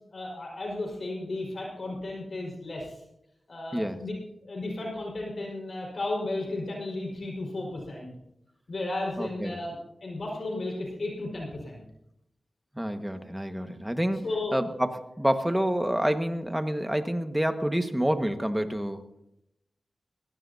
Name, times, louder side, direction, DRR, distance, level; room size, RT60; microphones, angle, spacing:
voice 1, 0.1-2.9 3.5-4.1 4.4-8.1 8.7-11.8 14.2-14.6, left 2 dB, 65° left, -1 dB, 5.1 m, -34 dB
voice 2, 9.2-9.6 12.7-14.2 14.5-19.0, equal, 5° right, 7 dB, 1.6 m, -28 dB
20.0 x 17.0 x 2.8 m, 0.81 s
cardioid pair, 45°, 0 cm